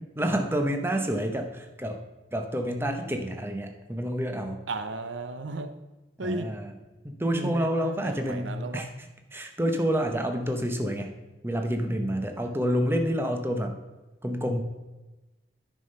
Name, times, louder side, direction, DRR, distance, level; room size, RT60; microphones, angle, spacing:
voice 1, 0.2-2.0 2.3-4.6 6.2-6.7 7.0-11.1 11.4-13.8 14.2-14.6, equal, 10° right, 4 dB, 0.8 m, -28 dB
voice 2, 4.7-5.8 6.2-6.5 7.3-8.8, right 2 dB, 85° right, 9 dB, 0.7 m, -35 dB
9.8 x 5.6 x 5.4 m, 1.1 s
head